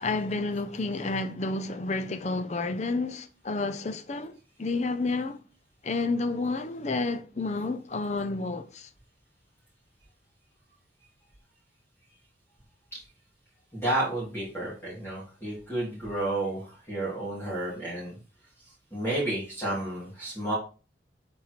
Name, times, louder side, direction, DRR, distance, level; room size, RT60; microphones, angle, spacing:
voice 1, 0.0-5.4 5.8-8.9, left 3 dB, 40° left, 0.5 m, -30 dB
voice 2, 13.7-18.2 18.9-20.5, right 1 dB, 10° left, 2.9 m, -31 dB
7.3 x 4.4 x 3.1 m
head